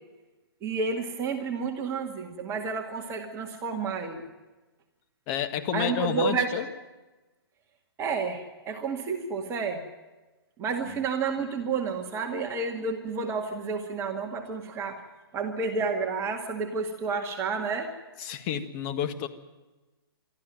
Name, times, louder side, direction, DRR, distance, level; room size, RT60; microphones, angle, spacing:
voice 1, 0.6-4.3 5.7-6.5 8.0-9.8 10.6-15.0 15.3-17.9, right 4 dB, 20° right, 3 dB, 2.1 m, -30 dB
voice 2, 5.3-6.7 10.8-11.0 18.2-19.3, left 9 dB, 30° left, 7 dB, 1.8 m, -30 dB
23.5 x 14.0 x 9.1 m, 1.2 s
hypercardioid pair, 135°, 13 cm